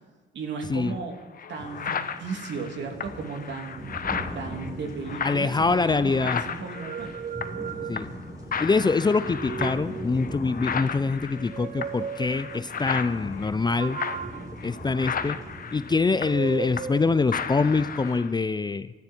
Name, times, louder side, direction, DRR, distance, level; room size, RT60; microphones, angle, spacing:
voice 1, 0.3-1.2 1.5-3.9 4.3-7.2, right 4 dB, 65° right, 3 dB, 3.0 m, -35 dB
sound 1, 0.9-1.0 1.4-7.7 8.0-8.2 8.5-17.0 17.3-18.3, left 7 dB, 45° left, 1.0 m, -34 dB
sound 2, 1.5-18.2, equal, 20° right, 4.2 m, -41 dB
voice 2, 5.2-6.4 7.9-8.1 8.6-14.0 14.6-15.4 15.7-18.9, left 4 dB, 20° left, 15 dB, 0.5 m, -24 dB
sound 3, 6.7-8.4 9.1-10.4 11.3-12.7 13.8-15.6 16.2-17.2, right 7 dB, 40° right, 0.7 m, -36 dB
24.0 x 13.0 x 4.6 m, 1.3 s
cardioid pair, 90°, 20 cm